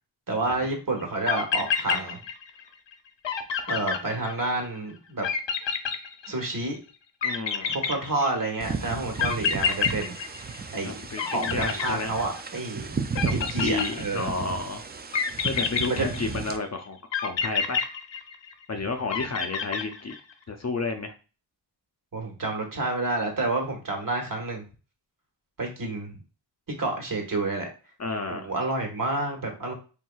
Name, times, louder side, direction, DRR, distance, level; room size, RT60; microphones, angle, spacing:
voice 1, 0.3-2.2 3.7-5.3 6.3-6.8 7.7-10.4 10.7-10.9 11.2-12.9 13.3-14.3 15.8-16.1 22.1-24.6 25.6-26.1 26.8-27.7 28.3-29.7, right 2 dB, 45° right, 1 dB, 1.4 m, -29 dB
sound 1, 1.0-1.1 1.3-2.6 2.9-3.0 3.2-4.7 5.2-6.6 7.2-8.5 9.2-10.9 11.2-12.6 13.1-14.4 15.1-16.6 17.1-18.6 19.1-20.3, left 6 dB, 75° left, 0.7 m, -28 dB
voice 2, 7.2-7.8 10.8-12.1 13.6-14.8 15.4-17.8 18.7-20.2 20.5-21.1 28.0-28.5, left 3 dB, 40° left, 5 dB, 0.5 m, -31 dB
sound 2, 8.6-16.6, right 5 dB, 25° right, 0.3 m, -34 dB
4.5 x 3.4 x 2.3 m, 0.34 s
wide cardioid pair, 125°, 44 cm